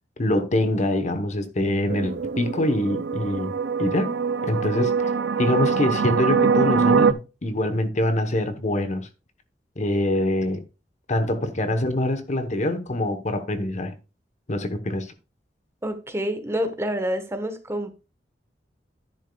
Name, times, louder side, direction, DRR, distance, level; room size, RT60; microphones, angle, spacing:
voice 1, 0.2-3.5 3.8-4.1 4.4-5.1 5.4-9.1 9.8-10.6 11.1-14.0 14.5-15.1, left 1 dB, 40° left, 1.0 m, -24 dB
sound 1, 1.9-7.1, right 5 dB, 75° right, 0.6 m, -23 dB
voice 2, 15.8-17.9, equal, 15° right, 1.2 m, -27 dB
10.5 x 10.0 x 2.3 m
head